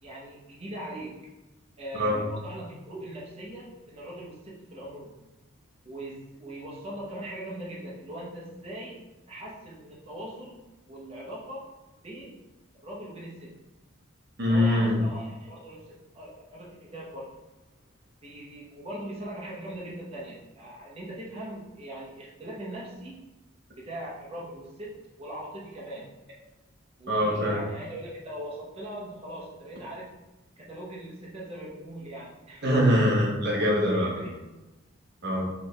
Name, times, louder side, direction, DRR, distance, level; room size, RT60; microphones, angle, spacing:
voice 1, 0.0-1.2 1.8-5.1 5.8-9.0 9.3-10.6 10.9-11.7 12.0-12.4 12.8-13.6 14.5-17.3 18.2-23.2 23.8-24.9 25.2-26.1 27.0-30.1 30.6-32.6 33.9-34.4, right 1 dB, 30° right, -5 dB, 0.9 m, -40 dB
voice 2, 14.4-15.0 27.1-27.6 32.6-34.2 35.2-35.4, equal, 55° right, -3 dB, 1.0 m, -23 dB
4.6 x 3.4 x 3.3 m, 1.1 s
head